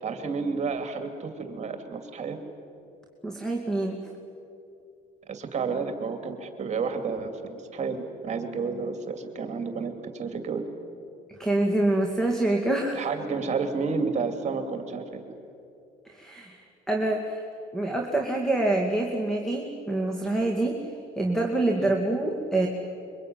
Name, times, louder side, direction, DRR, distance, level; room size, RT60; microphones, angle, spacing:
voice 1, 0.0-2.4 5.3-10.6 12.9-15.2 21.8-21.9, right 5 dB, 45° right, 6 dB, 2.6 m, -31 dB
voice 2, 3.2-4.0 11.4-13.0 16.0-17.4 17.7-20.8 21.2-22.7, right 2 dB, 5° left, 2 dB, 2.5 m, -26 dB
25.5 x 23.5 x 9.4 m, 2.7 s
cardioid pair, 110°, 17 cm